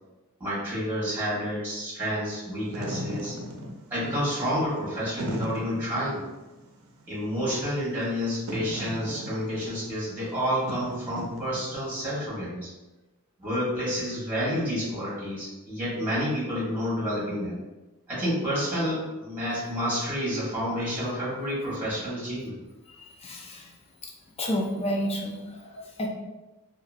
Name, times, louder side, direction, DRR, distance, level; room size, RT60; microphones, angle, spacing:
voice 1, 0.4-3.3 3.9-6.2 7.1-12.7 13.4-17.6 18.1-22.6, equal, 10° right, -9 dB, 1.3 m, -29 dB
Wind / Fire, 2.5-12.0, equal, 70° right, 0.5 m, -38 dB
voice 2, 22.9-23.7 24.0-24.1 24.4-26.1, equal, 25° left, 0 dB, 0.4 m, -31 dB
2.9 x 2.4 x 2.5 m, 1.1 s
head